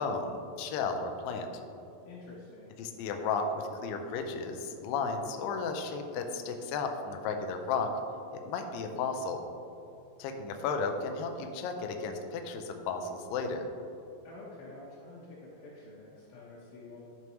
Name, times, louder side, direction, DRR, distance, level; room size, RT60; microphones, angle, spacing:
voice 1, 0.0-1.5 2.8-7.9 8.3-9.4 10.2-13.7, left 4 dB, 90° left, 4 dB, 2.0 m, -34 dB
voice 2, 2.1-2.7 14.2-17.0, left 2 dB, 70° left, -6 dB, 2.7 m, -48 dB
12.5 x 6.1 x 3.1 m, 2.9 s
omnidirectional pair, 4.8 m